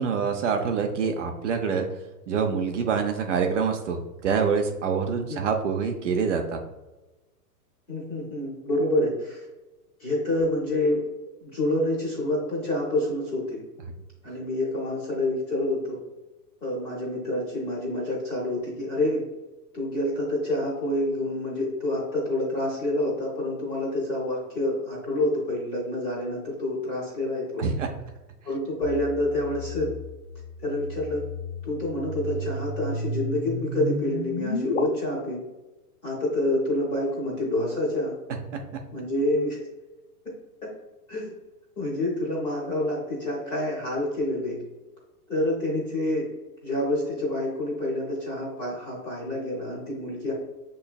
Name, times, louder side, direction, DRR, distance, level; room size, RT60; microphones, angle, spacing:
voice 1, 0.0-1.9 2.3-6.6 27.6-27.9 38.5-38.6, right 6 dB, 50° right, 4 dB, 0.6 m, -26 dB
voice 2, 7.9-9.5 10.0-11.1 11.4-13.6 14.2-16.0 16.6-19.2 19.7-27.7 28.4-29.9 30.6-31.2 31.6-35.4 36.0-38.2 38.9-39.6 40.6-40.7 41.1-41.3 41.8-44.6 45.3-46.3 46.6-50.3, left 1 dB, 10° left, -5 dB, 0.6 m, -27 dB
sound 1, 28.8-34.8, left 1 dB, 50° left, 0.7 m, -33 dB
6.8 x 3.1 x 2.2 m, 1.1 s
hypercardioid pair, 160°, 47 cm